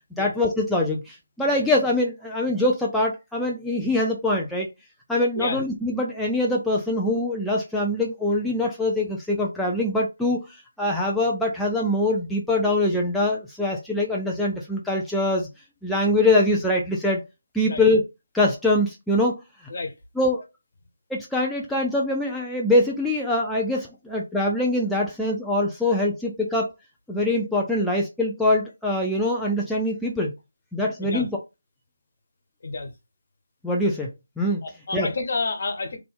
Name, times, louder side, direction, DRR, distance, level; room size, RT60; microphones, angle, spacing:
voice 1, 0.2-4.7 5.1-15.5 15.8-17.2 17.5-18.0 18.3-19.4 20.2-20.4 21.1-26.7 27.1-30.3 30.7-31.3 33.6-34.1 34.4-34.6 34.9-35.1, left 1 dB, ahead, 0.5 m, -23 dB
voice 2, 34.6-36.0, left 3 dB, 45° left, 1.3 m, -29 dB
3.8 x 3.4 x 3.7 m
figure-of-eight pair, 155°, 0 cm